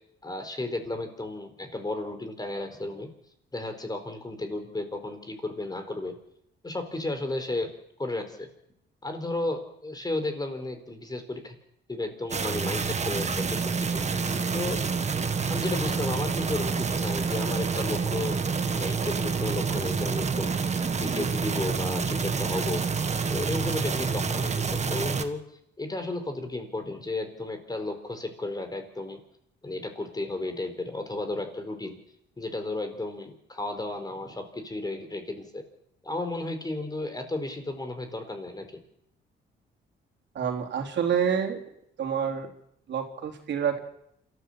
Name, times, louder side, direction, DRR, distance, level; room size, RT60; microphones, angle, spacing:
voice 1, 0.2-3.1 3.5-6.1 6.6-7.7 8.0-8.5 9.0-11.5 11.9-14.1 14.5-14.8 15.5-22.8 23.3-25.4 25.8-29.2 29.6-32.0 32.4-35.6 36.0-38.8, left 2 dB, 20° left, 7 dB, 4.3 m, -33 dB
sound 1, 12.3-25.3, right 5 dB, 35° right, 1.8 m, -28 dB
voice 2, 40.4-41.6 42.0-42.5 42.9-43.8, right 7 dB, 65° right, 2 dB, 3.5 m, -28 dB
27.0 x 14.0 x 7.4 m, 0.75 s
cardioid pair, 90°, 20 cm